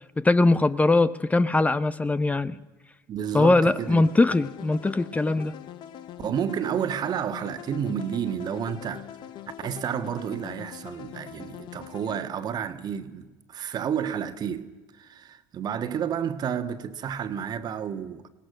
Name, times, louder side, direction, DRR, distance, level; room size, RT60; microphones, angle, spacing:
voice 1, 0.2-2.6 3.3-5.5, left 2 dB, 15° left, 0.7 m, -21 dB
voice 2, 3.1-4.0 6.2-9.1 9.6-18.3, right 8 dB, 50° right, 1.5 m, -31 dB
sound 1, 3.5-12.2, left 11 dB, 60° left, 1.0 m, -43 dB
23.5 x 18.0 x 6.4 m
hypercardioid pair, 75°, 9 cm